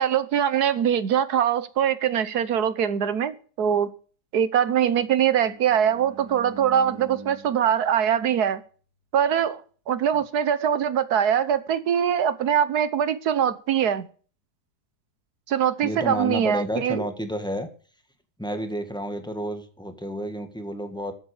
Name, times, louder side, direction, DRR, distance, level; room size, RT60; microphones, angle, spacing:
voice 1, 0.0-3.9 4.3-8.6 9.1-9.6 9.9-14.1 15.5-17.0, right 9 dB, 70° right, 1.5 m, -23 dB
Bowed string instrument, 4.7-8.9, right 2 dB, 15° right, 2.8 m, -46 dB
voice 2, 15.8-17.7 18.4-21.1, equal, 5° left, 1.5 m, -30 dB
13.0 x 8.0 x 6.6 m
omnidirectional pair, 1.7 m